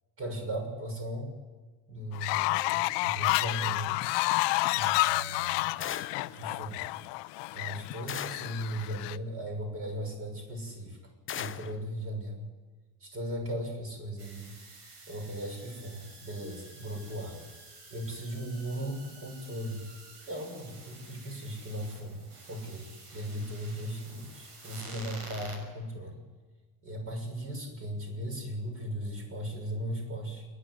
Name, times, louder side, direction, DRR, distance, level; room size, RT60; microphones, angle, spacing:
voice 1, 0.2-1.3 1.9-4.0 4.7-5.7 6.2-6.8 7.5-11.0 11.4-12.4 13.0-14.5 15.1-17.4 17.9-19.9 20.3-26.2 26.8-30.5, equal, 30° right, 3 dB, 6.6 m, -37 dB
Fowl, 2.1-9.2, left 20 dB, 80° left, 0.7 m, -30 dB
sound 1, 5.8-6.3 8.1-8.6 11.3-11.8, left 10 dB, 30° left, 0.7 m, -38 dB
sound 2, 14.2-25.6, right 3 dB, 70° right, 6.7 m, -50 dB
27.0 x 10.5 x 9.9 m, 1.3 s
cardioid pair, 130°, 42 cm